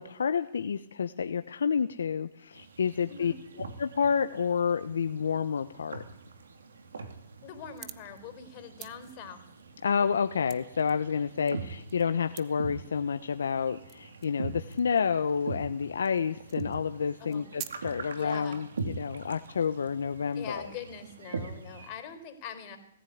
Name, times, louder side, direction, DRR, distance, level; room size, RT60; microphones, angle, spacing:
voice 1, 0.0-3.3 3.8-6.0 9.8-20.7, left 6 dB, 80° left, 9 dB, 1.0 m, -29 dB
sound 1, 2.5-21.9, right 4 dB, 80° right, 2.9 m, -43 dB
voice 2, 7.4-9.4 17.2-17.5 18.1-18.6 20.3-22.8, left 7 dB, 40° left, 7 dB, 4.0 m, -43 dB
sound 2, 7.7-8.2 8.5-10.9 11.3-12.0 12.3-12.5 13.2-13.3 13.9-14.4 14.7-15.0 15.6-15.7 16.0-16.2 16.5-16.9 17.2-17.7, right 15 dB, 35° right, 1.2 m, -46 dB
19.0 x 14.5 x 9.4 m, 0.76 s
hypercardioid pair, 130°, 0 cm